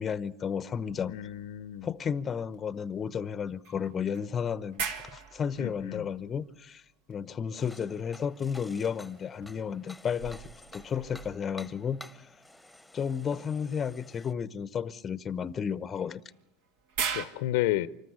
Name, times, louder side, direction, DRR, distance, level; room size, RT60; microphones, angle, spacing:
voice 1, 0.0-1.1 1.8-6.8 7.1-10.4 10.7-12.0 12.9-16.2, left 7 dB, 30° left, 0.8 m, -33 dB
sound 1, 0.9-2.2 2.5-2.6 3.6-7.1 8.9-11.9 13.7-13.8 15.9-17.2, right 6 dB, 70° right, 2.2 m, -40 dB
voice 2, 1.1-1.9 5.6-6.1 17.1-17.9, left 15 dB, 70° left, 0.8 m, -31 dB
sound 2, 7.6-14.3, left 1 dB, ahead, 1.1 m, -52 dB
25.5 x 13.5 x 9.6 m
hypercardioid pair, 90°, 0 cm